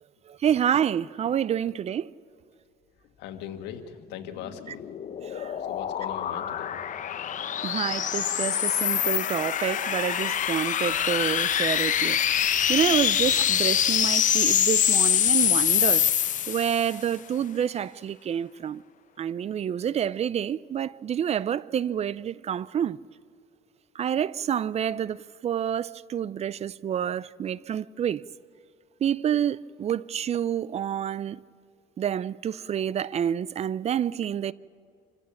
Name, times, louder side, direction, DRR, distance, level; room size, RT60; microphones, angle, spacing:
voice 1, 0.3-2.1 5.2-5.5 7.6-16.1 16.5-18.8 19.2-23.0 24.0-28.2 29.0-31.4 32.0-34.5, right 9 dB, 40° right, 0.4 m, -28 dB
voice 2, 3.2-4.8 5.6-6.8, left 9 dB, 90° left, 1.7 m, -39 dB
sound 1, 4.4-17.0, left 9 dB, 50° left, 0.9 m, -25 dB
27.0 x 15.5 x 7.1 m
cardioid pair, 110°, 17 cm